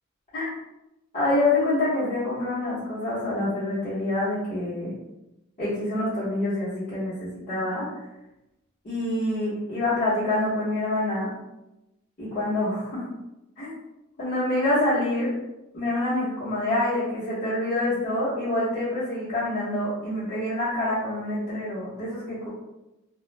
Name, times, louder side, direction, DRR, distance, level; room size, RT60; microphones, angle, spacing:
voice 1, 1.1-4.9 5.6-7.9 8.8-11.3 12.2-13.0 13.6-13.7 14.2-15.3 15.7-22.5, left 1 dB, 35° left, -14 dB, 1.0 m, -26 dB
2.3 x 2.0 x 3.2 m, 0.93 s
head